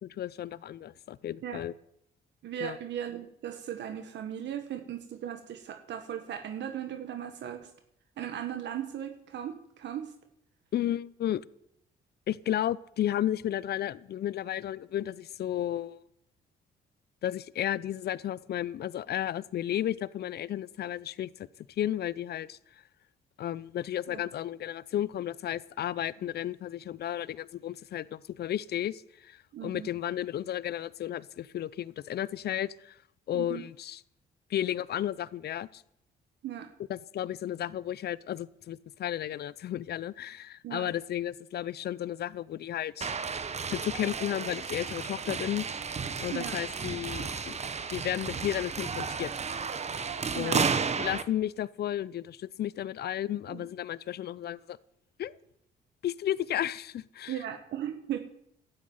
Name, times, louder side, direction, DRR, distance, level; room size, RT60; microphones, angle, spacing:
voice 1, 0.0-1.7 2.6-2.8 10.7-11.4 12.3-16.0 17.2-21.5 21.8-22.6 23.4-33.0 33.3-34.0 34.5-35.8 36.9-43.1 43.7-45.7 46.2-47.6 47.9-49.3 50.3-50.7 51.0-54.8 55.2-55.3 56.0-57.4, left 11 dB, 60° left, 19 dB, 0.6 m, -33 dB
voice 2, 2.4-7.7 8.2-10.1 24.1-24.2 29.5-29.9 33.3-33.6 36.4-36.7 40.6-40.9 46.3-46.6 50.3-50.6 53.5-53.7 57.3-58.2, right 10 dB, 75° right, 7 dB, 1.4 m, -37 dB
sound 1, 43.0-51.2, right 5 dB, 35° right, 1.2 m, -33 dB
12.5 x 8.8 x 9.4 m, 0.75 s
cardioid pair, 85°, 19 cm